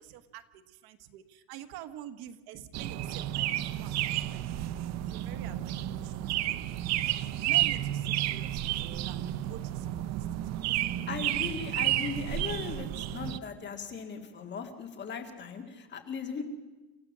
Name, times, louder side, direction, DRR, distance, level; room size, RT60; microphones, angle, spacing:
voice 1, 0.0-7.0 7.4-11.0, right 11 dB, 55° right, 10 dB, 1.4 m, -48 dB
sound 1, 2.7-13.4, right 13 dB, 40° right, 0.6 m, -31 dB
voice 2, 11.1-16.4, left 5 dB, 25° left, 5 dB, 2.2 m, -38 dB
28.0 x 14.5 x 7.3 m, 1.2 s
cardioid pair, 170°, 43 cm